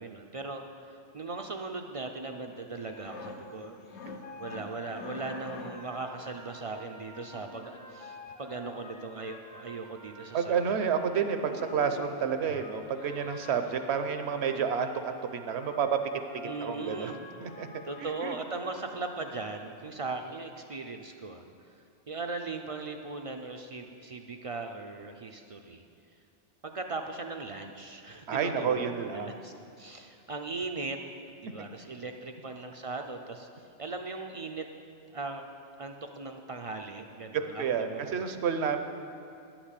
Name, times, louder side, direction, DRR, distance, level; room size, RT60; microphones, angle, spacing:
voice 1, 0.0-3.8 4.4-10.5 16.4-17.2 17.8-21.4 22.1-25.8 26.6-31.0 31.4-33.5 33.8-34.6 35.1-35.5 35.8-38.3, right 3 dB, 45° right, 4 dB, 0.4 m, -39 dB
sound 1, 2.8-6.0 7.0-8.2 9.3-9.4 9.7-9.8 10.1-10.3 10.6-10.8 11.0-12.3 12.8-14.4 14.8-15.0, left 3 dB, 80° left, 1.2 m, -47 dB
sound 2, 4.2-19.3, left 2 dB, 65° left, 1.4 m, -49 dB
voice 2, 10.3-16.0 16.6-17.1 17.4-17.7 18.0-18.4 28.3-29.4 37.6-38.8, right 7 dB, 70° right, 8 dB, 1.0 m, -30 dB
11.0 x 6.0 x 8.2 m, 2.5 s
omnidirectional pair, 1.2 m